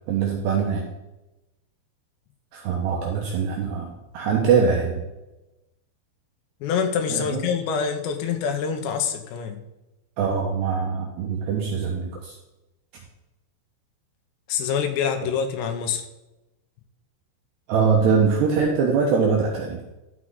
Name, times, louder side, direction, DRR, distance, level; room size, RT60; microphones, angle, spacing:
voice 1, 0.1-0.9 2.5-5.0 7.1-7.4 10.2-12.3 17.7-19.8, right 5 dB, 70° right, -1 dB, 2.8 m, -22 dB
voice 2, 6.6-9.6 14.5-16.0, left 7 dB, 85° left, 5 dB, 2.6 m, -25 dB
12.0 x 6.1 x 3.8 m, 0.99 s
omnidirectional pair, 5.9 m